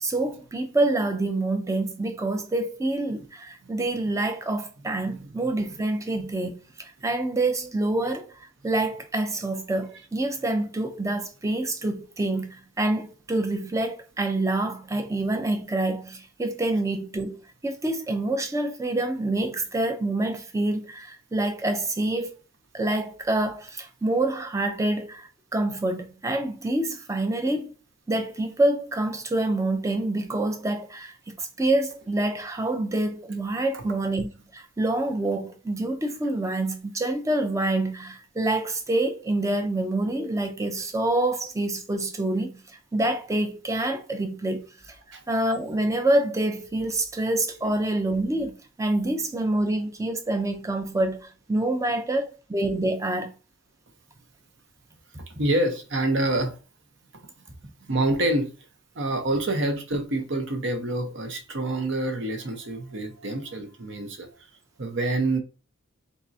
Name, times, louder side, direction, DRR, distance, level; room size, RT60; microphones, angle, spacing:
voice 1, 0.0-17.4 17.6-22.4 22.7-27.7 28.1-45.0 45.3-53.3, right 2 dB, 15° right, 0.5 m, -27 dB
voice 2, 55.3-56.5 57.9-58.5 58.9-64.3 64.8-65.4, right 2 dB, 60° right, 0.8 m, -26 dB
4.1 x 3.6 x 2.7 m
head